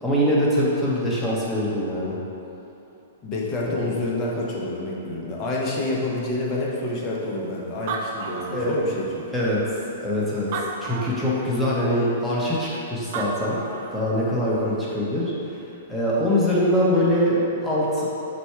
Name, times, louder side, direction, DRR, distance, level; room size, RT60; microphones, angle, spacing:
voice 1, 0.0-2.2 3.7-3.9 8.5-8.7 9.3-9.6 10.0-10.5 10.8-13.6 13.9-15.3 15.9-18.1, equal, 5° left, -8 dB, 0.8 m, -23 dB
voice 2, 3.2-9.2, left 2 dB, 30° left, -4 dB, 0.7 m, -28 dB
Animal, 7.4-7.5 7.7-9.1 9.8-9.9 10.4-11.4 12.8-12.9 13.1-14.1, right 4 dB, 50° right, 0.4 m, -32 dB
4.2 x 2.3 x 4.4 m, 3.0 s
hypercardioid pair, 135°, 0 cm